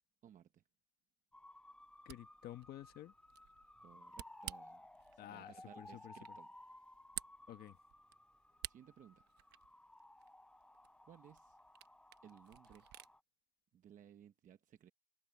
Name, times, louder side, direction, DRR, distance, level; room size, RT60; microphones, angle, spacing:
voice 1, 0.2-0.6 3.8-4.9 5.1-6.5 8.7-9.3 11.1-11.6 12.2-12.9 13.7-14.9, right 9 dB, 50° right, 1.0 m, -60 dB
sound 1, 1.3-13.2, left 1 dB, 5° left, 0.7 m, -59 dB
Camera, 1.8-13.1, right 15 dB, 80° right, 1.0 m, -54 dB
voice 2, 2.0-3.1 5.2-6.4 7.5-7.8, left 13 dB, 65° left, 1.7 m, -52 dB
cardioid pair, 110°, 17 cm